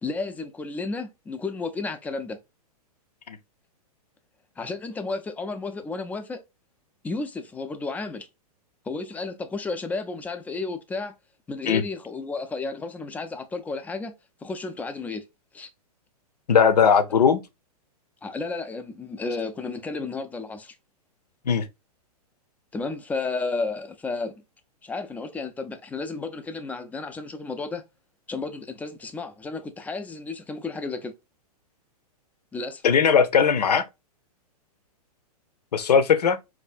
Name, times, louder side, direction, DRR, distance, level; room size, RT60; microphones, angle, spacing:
voice 1, 0.0-2.4 4.6-6.4 7.0-8.3 8.9-11.1 11.5-14.1 14.4-15.2 15.5-15.7 18.2-20.7 22.7-24.3 24.8-27.8 28.3-31.1 32.5-32.8, left 3 dB, 10° left, 0.4 m, -32 dB
voice 2, 16.5-17.4 21.5-21.7 32.8-33.8 35.7-36.4, left 6 dB, 85° left, 0.7 m, -19 dB
4.5 x 2.6 x 2.4 m
hypercardioid pair, 130°, 20 cm